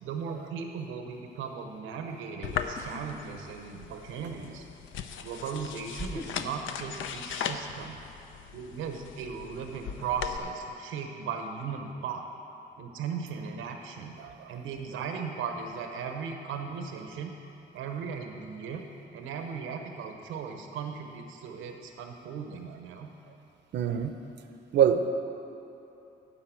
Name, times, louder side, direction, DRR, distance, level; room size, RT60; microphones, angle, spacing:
voice 1, 0.0-4.6 5.2-8.0 8.5-12.2 12.8-14.1 14.5-17.3 17.7-18.8 19.1-23.1, right 6 dB, 90° right, 4 dB, 0.9 m, -37 dB
sound 1, 2.4-10.4, left 7 dB, 75° left, 0.6 m, -38 dB
sound 2, 2.7-3.1 3.4-4.1 5.1-5.2 5.9-7.3 7.6-8.0, left 2 dB, 15° left, 0.6 m, -41 dB
voice 2, 14.2-14.5 23.7-24.1 24.7-25.1, right 8 dB, 65° right, 8 dB, 0.7 m, -25 dB
12.0 x 4.2 x 8.2 m, 2.9 s
cardioid pair, 90°, 20 cm